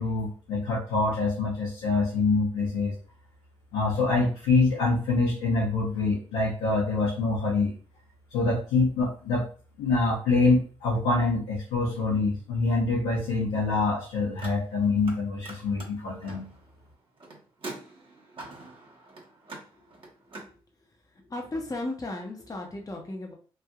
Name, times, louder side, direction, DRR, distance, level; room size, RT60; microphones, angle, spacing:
voice 1, 0.0-2.9 3.7-7.7 8.3-9.5 9.8-16.5, left 3 dB, 85° left, -7 dB, 1.0 m, -25 dB
Car, 14.3-15.2 15.4-20.5, right 2 dB, 45° right, 1.1 m, -44 dB
voice 2, 21.1-23.3, left 2 dB, 30° left, 1 dB, 0.8 m, -35 dB
3.2 x 2.7 x 2.3 m, 0.41 s
hypercardioid pair, 45°, 12 cm